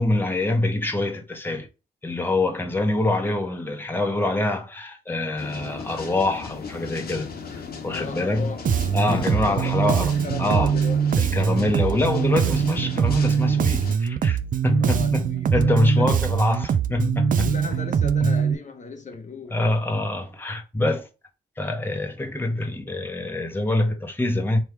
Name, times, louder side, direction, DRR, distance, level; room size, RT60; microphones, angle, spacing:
voice 1, 0.0-1.7 2.0-8.5 8.9-10.7 11.2-14.4 14.6-15.2 15.5-17.5 18.2-18.3 19.5-21.1 21.6-24.6, left 2 dB, 10° left, 0.8 m, -25 dB
sound 1, 5.4-13.9, left 5 dB, 65° left, 1.0 m, -36 dB
voice 2, 7.9-9.0 9.4-11.0 14.8-16.1 17.4-19.6, left 4 dB, 45° left, 0.8 m, -37 dB
Bass guitar, 8.7-18.5, right 8 dB, 55° right, 0.4 m, -22 dB
Acoustic guitar / Strum, 9.1-14.3, left 6 dB, 30° left, 0.4 m, -40 dB
3.3 x 3.0 x 4.4 m
cardioid pair, 75°, 17 cm